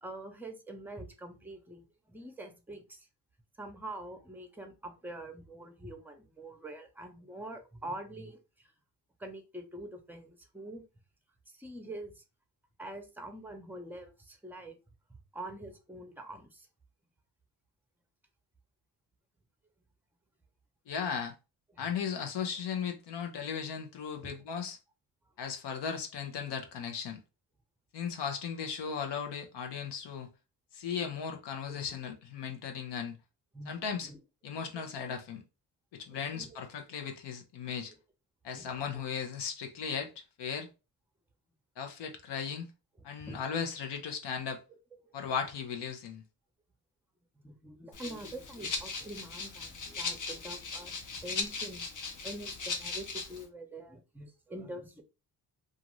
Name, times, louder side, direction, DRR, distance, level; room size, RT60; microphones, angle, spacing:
voice 1, 0.0-3.1 3.6-8.4 9.2-10.8 11.5-12.2 12.8-14.8 15.1-16.7 21.7-21.8 24.2-24.3 31.7-31.9 33.5-33.7 34.0-34.2 34.6-34.8 36.1-36.6 38.5-38.8 43.2-43.4 45.1-45.2 47.4-50.9 51.2-51.9 52.2-55.0, right 1 dB, 5° right, 0.7 m, -45 dB
voice 2, 20.9-21.3 21.8-24.8 25.4-27.2 27.9-30.3 30.7-33.1 33.7-34.1 34.4-35.4 35.9-37.9 38.4-40.7 41.8-42.7 43.0-44.6 45.1-46.2, left 7 dB, 80° left, 0.8 m, -36 dB
Rattle (instrument), 47.9-53.4, left 4 dB, 50° left, 0.8 m, -38 dB
2.5 x 2.5 x 3.0 m
cardioid pair, 90°, 41 cm